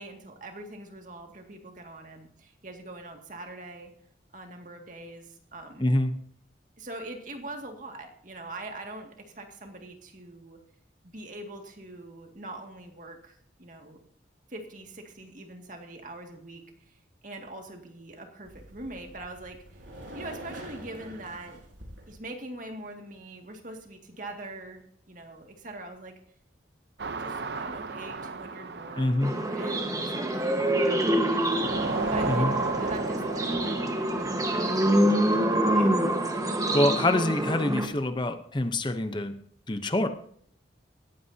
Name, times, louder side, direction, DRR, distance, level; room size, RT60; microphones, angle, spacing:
voice 1, 0.0-3.9 4.3-6.0 6.8-10.6 11.1-14.0 14.5-19.8 20.1-21.6 22.1-26.2 27.2-30.7 31.0-31.5 32.1-36.2, right 2 dB, 45° right, 3 dB, 2.1 m, -43 dB
voice 2, 5.8-6.1 29.0-29.3 32.3-32.5 36.7-39.3 39.7-40.1, left 1 dB, 25° left, 8 dB, 0.8 m, -25 dB
sound 1, 18.4-22.2, right 1 dB, 90° right, 4.7 m, -45 dB
sound 2, 27.0-31.0 31.5-35.7, right 3 dB, 60° right, 0.7 m, -35 dB
sound 3, 29.2-37.9, right 1 dB, 20° right, 1.3 m, -26 dB
19.0 x 15.5 x 2.8 m, 0.64 s
head